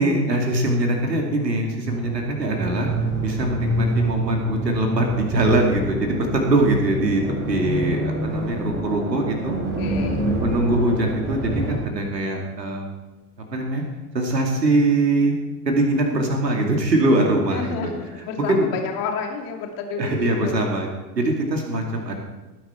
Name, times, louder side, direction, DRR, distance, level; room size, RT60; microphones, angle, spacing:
voice 1, 0.0-2.9 3.2-7.2 7.5-9.6 10.4-12.9 13.5-13.8 14.1-15.3 15.7-17.9 18.5-18.7 20.0-20.9 21.1-22.2, right 2 dB, 80° right, 2 dB, 2.5 m, -22 dB
sound 1, 1.9-11.8, right 1 dB, 20° right, 5.1 m, -27 dB
voice 2, 9.8-10.3 17.5-20.7, left 5 dB, 45° left, 3 dB, 2.8 m, -30 dB
18.5 x 11.0 x 4.5 m, 1.1 s
figure-of-eight pair, 80°, 49 cm